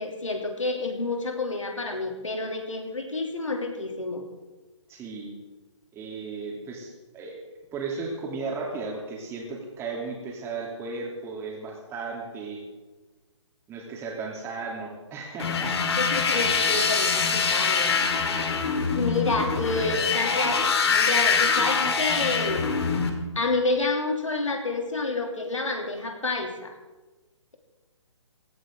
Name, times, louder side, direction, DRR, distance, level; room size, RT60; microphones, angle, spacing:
voice 1, 0.0-4.2 15.9-18.2 18.9-22.7 23.3-26.7, left 3 dB, 85° left, 3 dB, 2.9 m, -29 dB
voice 2, 4.9-5.3 5.9-7.4 7.7-12.6 13.7-15.8, right 4 dB, 15° right, 0 dB, 3.0 m, -35 dB
sound 1, 15.4-23.1, left 5 dB, 55° left, 2.2 m, -24 dB
17.5 x 14.0 x 3.8 m, 1.2 s
figure-of-eight pair, 135°, 16 cm